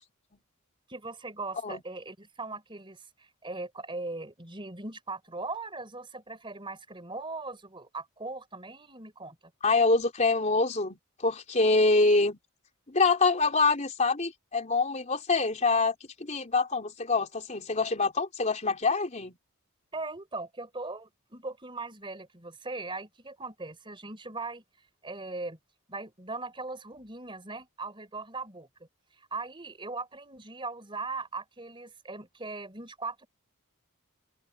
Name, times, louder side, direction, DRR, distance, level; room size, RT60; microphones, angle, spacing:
voice 1, 0.9-9.4 19.9-24.6 25.0-25.6 25.9-28.7 29.2-33.3, right 3 dB, 25° right, 4.5 m, -39 dB
voice 2, 9.6-12.4 12.9-19.3, left 3 dB, 35° left, 3.5 m, -25 dB
open air
head